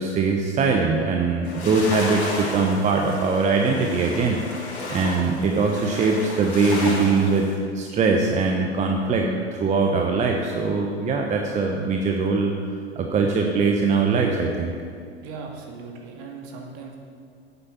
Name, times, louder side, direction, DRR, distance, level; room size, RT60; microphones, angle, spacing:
voice 1, 0.0-4.4 4.9-7.5 7.7-12.5 13.0-14.7, right 4 dB, 20° right, 2 dB, 0.8 m, -22 dB
sound 1, 1.4-7.6, left 2 dB, 75° left, 2.7 m, -33 dB
voice 2, 15.2-17.0, right 4 dB, 45° right, 1 dB, 2.1 m, -38 dB
8.9 x 8.4 x 6.9 m, 2.2 s
hypercardioid pair, 100°, 33 cm